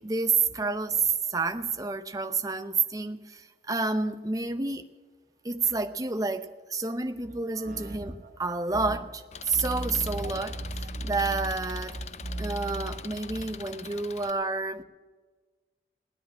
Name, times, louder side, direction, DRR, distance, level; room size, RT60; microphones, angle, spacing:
voice 1, 0.0-4.9 5.4-12.0 12.4-14.8, right 4 dB, 20° right, 9 dB, 0.7 m, -29 dB
voice 2, 7.5-8.3 8.7-9.0 9.5-11.5 11.9-13.0 13.3-13.4, right 1 dB, 50° right, 3 dB, 1.7 m, -36 dB
Engine, 9.3-14.3, left 7 dB, 40° left, 0.5 m, -44 dB
17.5 x 10.0 x 6.1 m, 1.4 s
head